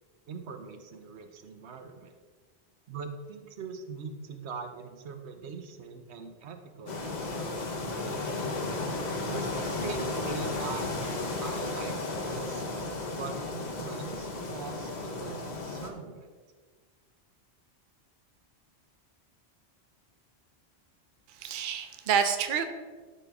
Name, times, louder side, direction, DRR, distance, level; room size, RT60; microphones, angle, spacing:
voice 1, 0.3-2.1 2.9-8.5 9.2-12.6 13.1-16.3, right 5 dB, 85° right, 7 dB, 1.0 m, -42 dB
sound 1, 6.9-15.9, left 2 dB, 45° left, 0.9 m, -34 dB
voice 2, 21.3-22.6, right 7 dB, 55° right, 7 dB, 0.7 m, -28 dB
12.5 x 4.3 x 3.5 m, 1.5 s
omnidirectional pair, 1.1 m